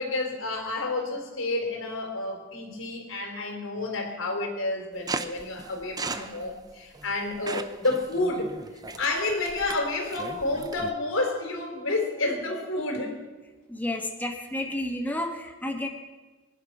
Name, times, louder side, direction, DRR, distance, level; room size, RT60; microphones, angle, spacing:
voice 1, 0.0-8.5 8.9-13.2, left 2 dB, 90° left, 2 dB, 3.7 m, -30 dB
sound 1, 5.1-10.9, right 3 dB, 20° right, 0.7 m, -37 dB
voice 2, 13.7-15.9, left 1 dB, 10° left, 2 dB, 1.4 m, -31 dB
21.5 x 11.0 x 6.1 m, 1.3 s
head